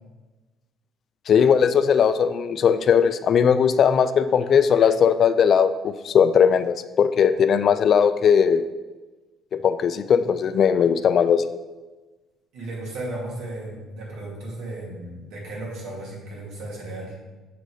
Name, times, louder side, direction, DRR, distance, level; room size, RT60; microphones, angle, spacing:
voice 1, 1.3-8.6 9.5-11.4, left 7 dB, 40° left, 12 dB, 0.3 m, -19 dB
voice 2, 12.5-17.2, right 1 dB, 85° right, -3 dB, 2.4 m, -35 dB
7.5 x 4.0 x 4.8 m, 1.2 s
cardioid pair, 160°, 0 cm